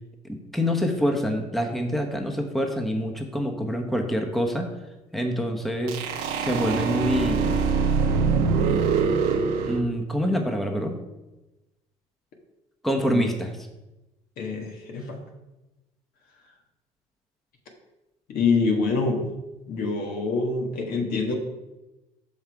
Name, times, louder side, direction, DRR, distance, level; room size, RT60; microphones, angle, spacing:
voice 1, 0.2-4.7 5.1-6.0 6.4-7.6 9.7-10.9 12.8-13.5, equal, ahead, 3 dB, 1.0 m, -26 dB
sound 1, 5.9-9.8, right 5 dB, 85° right, 1.1 m, -23 dB
voice 2, 14.4-15.2 18.3-19.3 19.7-21.3, left 4 dB, 65° left, 2 dB, 1.6 m, -25 dB
6.4 x 5.5 x 4.7 m, 1.0 s
supercardioid pair, 85°, 16 cm